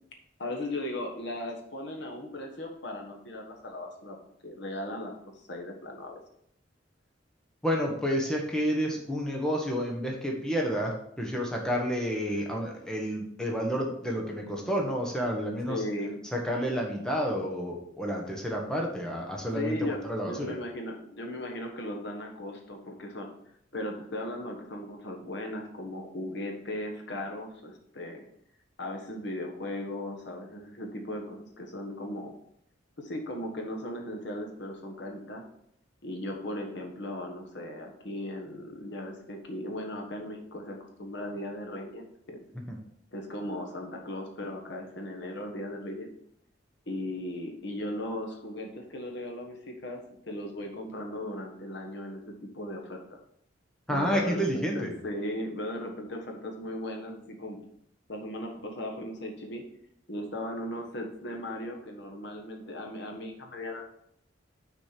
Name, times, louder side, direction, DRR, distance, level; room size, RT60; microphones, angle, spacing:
voice 1, 0.4-4.2 4.4-5.1 5.5-6.2 15.7-16.2 19.5-23.3 23.7-28.2 28.8-32.3 33.0-35.4 36.0-42.4 43.1-46.1 46.9-50.0 50.3-53.2 53.9-57.7 58.1-59.6 60.1-63.8, left 1 dB, 65° left, 2 dB, 1.4 m, -37 dB
voice 2, 7.6-15.8 16.3-20.5 53.9-54.9, equal, 5° left, -1 dB, 1.3 m, -30 dB
6.2 x 5.2 x 5.9 m, 0.71 s
head